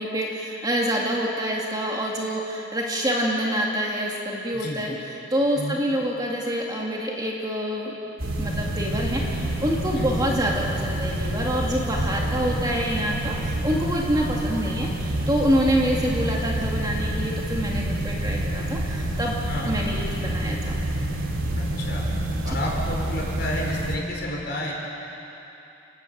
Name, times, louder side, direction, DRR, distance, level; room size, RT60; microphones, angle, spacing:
voice 1, 0.0-19.4 19.6-20.7 22.5-22.6, equal, 20° right, -2 dB, 2.1 m, -26 dB
sound 1, 8.2-24.0, right 1 dB, 80° right, 2.7 m, -28 dB
voice 2, 21.6-22.0 22.4-24.7, equal, 50° left, -2 dB, 4.4 m, -31 dB
29.5 x 12.0 x 8.5 m, 3.0 s
head